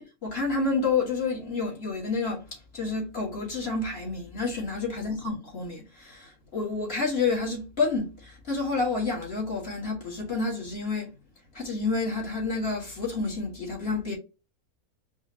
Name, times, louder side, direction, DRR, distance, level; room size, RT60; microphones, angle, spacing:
voice 1, 0.0-11.1 11.5-14.1, left 4 dB, 45° left, 2.0 m, -29 dB
5.0 x 2.4 x 2.9 m
omnidirectional pair, 1.6 m